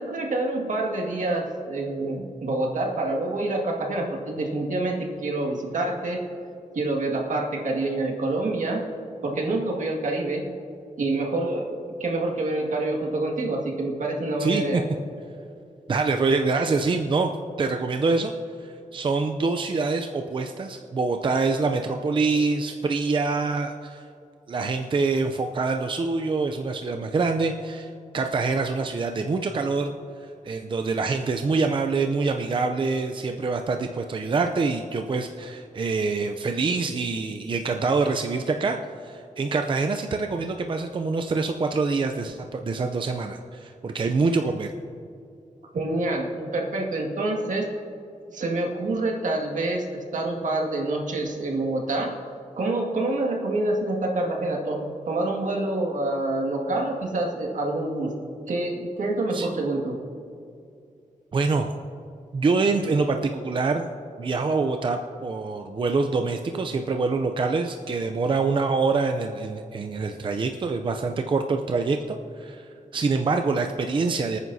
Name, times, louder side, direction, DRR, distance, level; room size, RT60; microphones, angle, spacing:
voice 1, 0.0-6.2 6.7-8.8 9.2-10.4 11.0-14.9 45.7-47.7 48.3-52.2 52.6-58.1 58.5-60.0, right 2 dB, 75° right, 0 dB, 2.0 m, -27 dB
voice 2, 14.4-14.8 15.9-17.3 17.6-18.3 18.6-24.0 24.5-30.0 30.2-44.7 59.3-59.5 61.3-61.7 62.3-63.9 64.2-74.4, right 4 dB, 40° right, 5 dB, 0.5 m, -25 dB
25.0 x 9.4 x 2.7 m, 2.5 s
wide cardioid pair, 135°, 13 cm